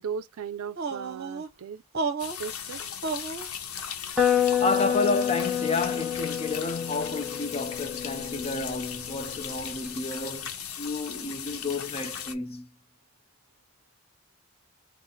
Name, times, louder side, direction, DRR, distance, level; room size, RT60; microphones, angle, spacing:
voice 1, 0.0-1.8 2.4-2.8, right 7 dB, 80° right, 0.4 m, -37 dB
sound 1, 0.8-1.5 1.9-2.5 3.0-3.5, right 4 dB, 45° right, 0.8 m, -31 dB
sound 2, 2.2-12.3, left 8 dB, 80° left, 0.7 m, -38 dB
sound 3, 4.2-9.9, left 9 dB, ahead, 0.8 m, -29 dB
voice 2, 4.6-10.5 10.8-12.7, left 3 dB, 25° left, 0.5 m, -30 dB
4.0 x 2.0 x 3.8 m
head